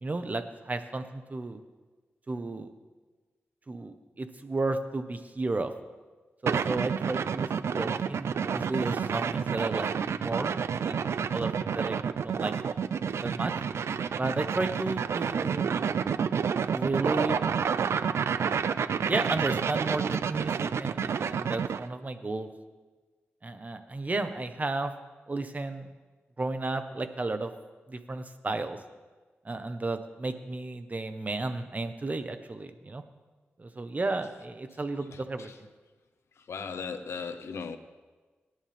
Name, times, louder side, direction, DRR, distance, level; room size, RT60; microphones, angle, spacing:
voice 1, 0.0-1.6 2.3-2.7 3.7-5.7 6.4-12.0 12.2-12.5 13.2-13.5 14.1-15.9 16.7-17.4 19.0-22.5 23.4-24.9 25.3-25.9 26.4-27.5 27.9-28.8 29.4-33.0 33.6-35.5, right 2 dB, 35° right, 8 dB, 1.3 m, -33 dB
sound 1, 6.5-21.9, right 7 dB, 80° right, 0.5 m, -29 dB
voice 2, 34.7-35.6 36.3-37.8, left 5 dB, 80° left, 9 dB, 1.1 m, -39 dB
26.0 x 11.0 x 3.6 m, 1.3 s
cardioid pair, 60°, 4 cm